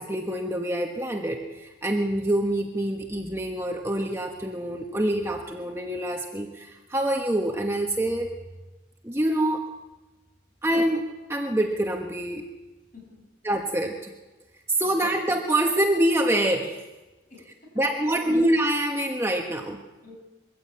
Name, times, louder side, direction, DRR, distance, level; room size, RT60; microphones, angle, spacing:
voice 1, 0.0-8.3 9.0-9.7 10.6-12.4 13.4-14.1 14.7-16.8 17.8-19.8, right 1 dB, 15° right, 2 dB, 1.3 m, -26 dB
voice 2, 12.9-13.3 14.8-15.2 17.3-17.8 18.1-18.4 20.0-20.2, left 2 dB, 40° left, 0 dB, 7.5 m, -49 dB
23.0 x 15.0 x 8.7 m, 1.2 s
head